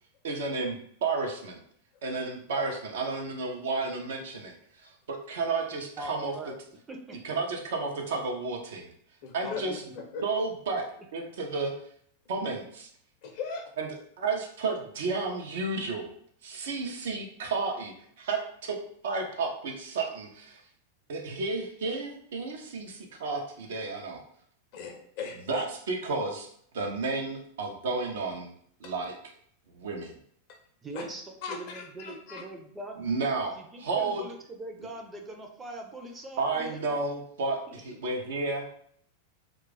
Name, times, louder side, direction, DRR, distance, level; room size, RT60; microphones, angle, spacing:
voice 1, 0.2-1.6 2.0-6.3 7.2-8.9 9.3-9.8 10.2-10.8 11.1-11.7 12.3-12.9 13.8-13.9 14.2-16.1 16.4-18.8 19.0-20.6 21.1-24.2 25.5-26.5 26.7-28.5 28.8-29.1 29.7-30.2 33.0-34.2 36.4-38.8, right 3 dB, 60° right, 2 dB, 0.6 m, -32 dB
voice 2, 6.0-6.6 6.9-7.2 9.4-10.0 30.8-33.1 33.5-36.9, right 2 dB, 15° right, 3 dB, 0.6 m, -42 dB
voice 3, 9.2-9.6 10.0-10.2 13.2-13.7 24.7-25.6 28.8-28.9 30.5-30.6 30.9-31.0 31.4-32.4, left 5 dB, 45° left, 2 dB, 0.7 m, -38 dB
2.4 x 2.3 x 3.9 m, 0.64 s
figure-of-eight pair, 90°, 0 cm